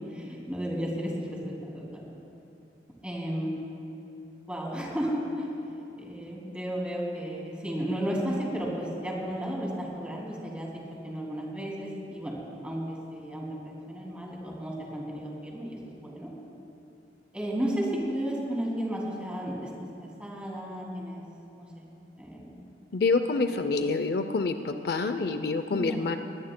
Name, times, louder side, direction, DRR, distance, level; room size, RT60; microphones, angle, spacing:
voice 1, 0.1-2.0 3.0-3.6 4.5-10.7 11.0-12.4 12.6-16.3 17.3-19.7 20.2-21.2 21.5-21.8 22.2-22.6 23.5-23.6 25.7-26.1, equal, 5° right, -4 dB, 2.5 m, -33 dB
voice 2, 22.9-26.2, left 3 dB, 60° left, 8 dB, 0.5 m, -27 dB
22.0 x 17.0 x 2.2 m, 2.9 s
head